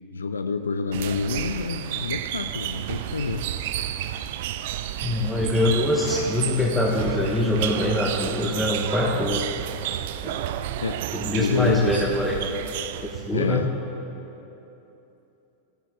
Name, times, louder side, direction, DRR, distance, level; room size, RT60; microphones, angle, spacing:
voice 1, 0.1-3.5 10.8-11.1 11.3-12.0 13.3-13.7, left 4 dB, 75° left, 9 dB, 0.4 m, -27 dB
sound 1, 0.9-13.4, right 11 dB, 50° right, 0.4 m, -31 dB
voice 2, 5.0-9.5 10.2-10.4 11.1-12.5 13.0-13.6, left 1 dB, 10° left, -3 dB, 1.2 m, -24 dB
18.5 x 13.5 x 2.3 m, 3.0 s
figure-of-eight pair, 90°, 0 cm